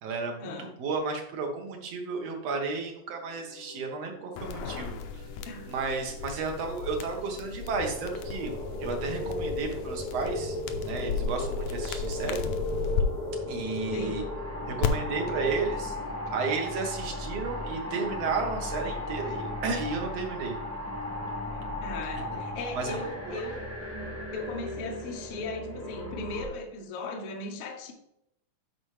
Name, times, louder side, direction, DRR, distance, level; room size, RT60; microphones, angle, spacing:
voice 1, 0.0-5.2 5.7-8.5 8.8-12.4 13.5-14.2 14.7-20.5 22.8-23.0 23.2-23.4, right 4 dB, 60° right, 2 dB, 2.2 m, -33 dB
sound 1, 3.0-18.0, left 3 dB, 40° left, 1.6 m, -50 dB
sound 2, 4.4-13.0 14.8-14.9, left 6 dB, 80° left, 2.0 m, -35 dB
sound 3, 7.6-26.5, left 1 dB, 5° right, 1.2 m, -36 dB
voice 2, 21.5-23.7 24.3-27.9, left 3 dB, 60° left, 1 dB, 1.8 m, -37 dB
12.0 x 4.3 x 3.2 m, 0.80 s
omnidirectional pair, 3.5 m